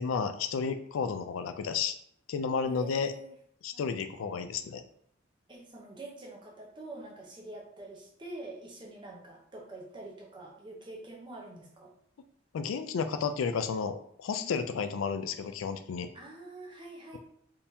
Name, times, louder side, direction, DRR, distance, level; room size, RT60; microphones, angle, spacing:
voice 1, 0.0-2.0 2.3-3.1 3.6-4.8 12.5-16.1, left 5 dB, 80° left, 10 dB, 0.3 m, -32 dB
voice 2, 2.6-3.3 3.7-4.3 5.5-11.9 14.4-14.5 16.1-17.2, right 2 dB, 25° right, -1 dB, 0.7 m, -46 dB
3.6 x 2.8 x 2.6 m, 0.67 s
head